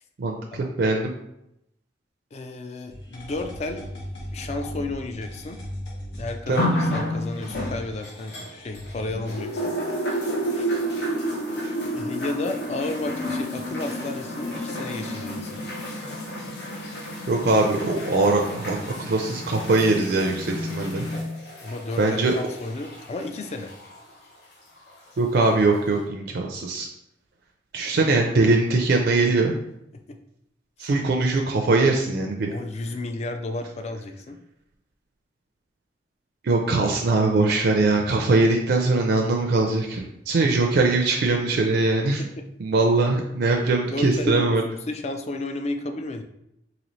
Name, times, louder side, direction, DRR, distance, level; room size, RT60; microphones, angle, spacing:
voice 1, 0.2-1.1 6.5-6.8 17.3-21.1 22.0-22.3 25.2-26.9 27.7-29.5 30.8-32.5 36.4-42.2 42.6-44.6, right 3 dB, 65° right, 1 dB, 0.4 m, -21 dB
voice 2, 2.3-3.9 4.3-5.6 6.2-9.8 10.5-10.7 11.9-15.6 21.6-23.7 28.0-28.1 30.1-30.2 30.8-30.9 32.5-34.4 42.2-42.4 43.7-44.6 44.9-46.2, left 2 dB, 40° left, 6 dB, 0.4 m, -32 dB
sound 1, 2.9-9.4, left 1 dB, 90° left, 1.2 m, -38 dB
sound 2, 6.6-8.9 9.3-24.0 24.9-25.0, equal, 65° left, 0.8 m, -30 dB
4.0 x 2.8 x 3.1 m, 0.81 s
head